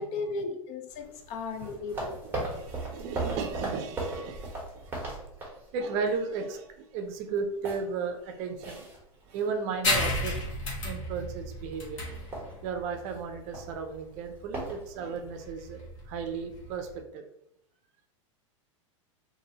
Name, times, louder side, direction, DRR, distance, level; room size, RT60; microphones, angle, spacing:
voice 1, 0.0-2.2, left 3 dB, 45° left, 0.5 m, -35 dB
sound 1, 0.9-6.1 6.5-6.7 7.1-9.8 10.1-10.4 11.0-11.3 11.6-11.7 12.0-15.4, right 2 dB, 15° right, 1.2 m, -38 dB
voice 2, 2.4-5.1 5.7-8.9 9.3-10.3 10.8-12.3 12.6-17.2, right 5 dB, 45° right, 0.5 m, -35 dB
sound 2, 9.8-17.0, left 2 dB, 75° left, 1.1 m, -33 dB
2.6 x 2.6 x 2.8 m
hypercardioid pair, 110°, 17 cm